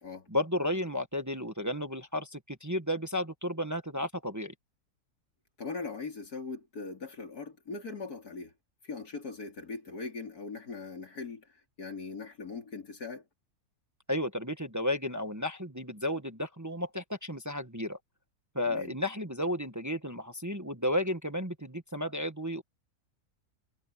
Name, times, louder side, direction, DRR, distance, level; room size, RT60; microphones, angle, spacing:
voice 1, 0.3-4.5 14.1-18.0 18.5-22.6, left 1 dB, 15° right, 1.2 m, -33 dB
voice 2, 5.6-8.5 8.8-11.5 11.8-13.2 18.7-18.9, left 4 dB, 85° left, 4.0 m, -40 dB
omnidirectional pair, 1.6 m